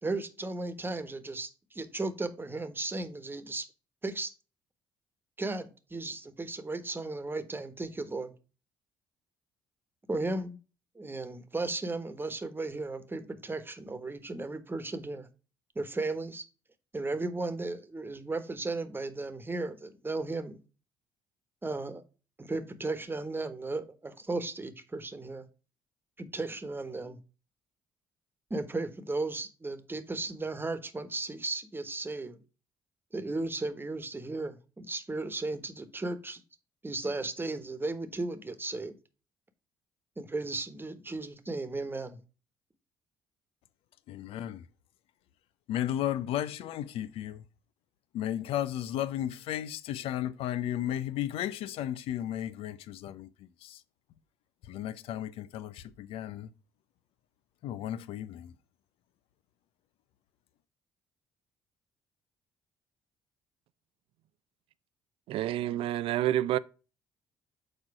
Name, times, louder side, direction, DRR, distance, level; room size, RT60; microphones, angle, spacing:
voice 1, 0.0-3.7 4.0-4.3 5.4-8.3 10.1-10.6 10.9-15.3 15.7-16.4 16.9-20.6 21.6-22.0 22.4-25.4 26.2-27.2 28.5-32.4 33.1-36.4 36.8-39.0 40.2-42.2, right 2 dB, 20° right, 1.3 m, -35 dB
voice 2, 44.1-44.6 45.7-47.4 48.1-53.3 53.6-53.8 54.7-56.5 57.6-58.5, left 11 dB, 70° left, 0.6 m, -34 dB
voice 3, 65.3-66.6, right 13 dB, 65° right, 0.4 m, -28 dB
6.8 x 4.5 x 4.8 m
hypercardioid pair, 55°, 10 cm